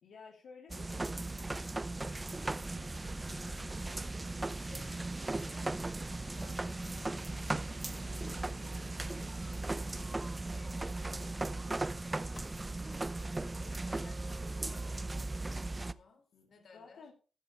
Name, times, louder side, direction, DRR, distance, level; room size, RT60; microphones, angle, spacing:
voice 1, 0.0-4.1 16.3-17.1, left 5 dB, 80° left, 3.1 m, -57 dB
sound 1, 0.7-15.9, right 2 dB, 20° right, 0.6 m, -37 dB
voice 2, 4.4-11.8 13.3-17.1, left 4 dB, 65° left, 3.5 m, -60 dB
Sliding door, 4.9-13.5, left 3 dB, 35° left, 2.1 m, -62 dB
14.5 x 11.0 x 3.4 m
cardioid pair, 85°, 0 cm